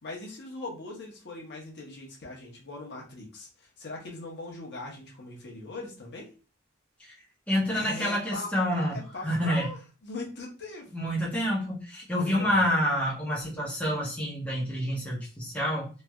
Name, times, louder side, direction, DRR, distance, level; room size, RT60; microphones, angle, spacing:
voice 1, 0.0-3.5 3.8-6.3 7.7-9.8 10.0-10.9 12.2-12.6, left 2 dB, 55° left, -1 dB, 0.9 m, -40 dB
voice 2, 7.5-9.7 10.9-15.9, equal, 5° left, -7 dB, 0.9 m, -28 dB
3.2 x 2.6 x 2.3 m, 0.35 s
head